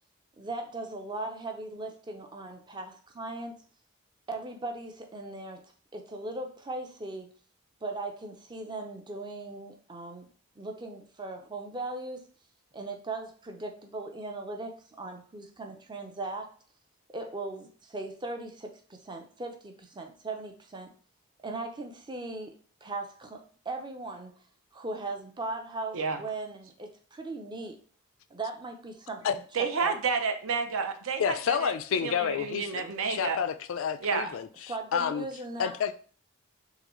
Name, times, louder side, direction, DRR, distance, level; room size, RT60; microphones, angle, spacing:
voice 1, 0.4-3.5 4.3-5.6 5.9-7.3 7.8-10.3 10.6-12.2 12.7-16.5 17.1-20.9 21.4-22.5 22.8-24.3 24.7-27.8 28.3-30.0 32.8-32.9 34.7-35.8, right 2 dB, 20° right, 0.5 m, -38 dB
voice 2, 29.5-31.7 32.0-33.4 34.0-34.3, right 5 dB, 65° right, 0.6 m, -30 dB
voice 3, 31.2-32.8 33.1-34.5 34.9-35.3 35.6-35.9, left 7 dB, 60° left, 0.3 m, -29 dB
3.8 x 3.3 x 3.0 m
head